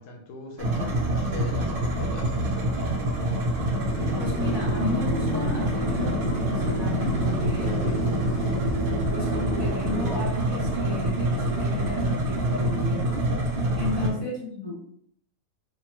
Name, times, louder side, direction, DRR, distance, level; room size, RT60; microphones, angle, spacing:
voice 1, 0.0-2.9 7.6-8.0 13.8-14.3, left 3 dB, 85° left, 1 dB, 1.2 m, -40 dB
sound 1, 0.6-14.1, right 1 dB, 70° right, 0.5 m, -26 dB
sound 2, 3.9-10.2, left 1 dB, 60° left, 0.8 m, -32 dB
voice 2, 4.1-8.0 9.1-13.3 13.8-14.8, left 3 dB, 20° left, -6 dB, 1.0 m, -34 dB
3.1 x 2.2 x 2.9 m, 0.66 s
omnidirectional pair, 1.7 m